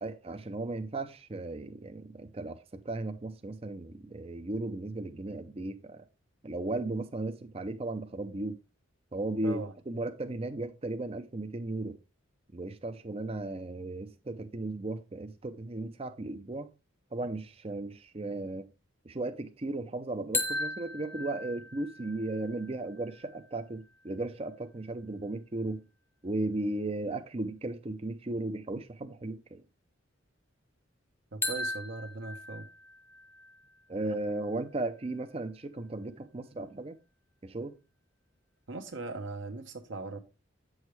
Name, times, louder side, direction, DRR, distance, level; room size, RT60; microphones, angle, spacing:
voice 1, 0.0-6.1 6.4-8.6 9.1-12.0 12.5-16.7 17.1-18.7 19.0-25.8 26.2-29.6 33.9-37.0 37.4-37.7, right 2 dB, 30° right, 0.5 m, -36 dB
sound 1, 20.3-24.2 31.4-35.3, left 2 dB, 10° left, 0.8 m, -39 dB
voice 2, 31.3-32.7 38.7-40.2, right 3 dB, 65° right, 0.9 m, -39 dB
8.4 x 6.4 x 3.2 m
head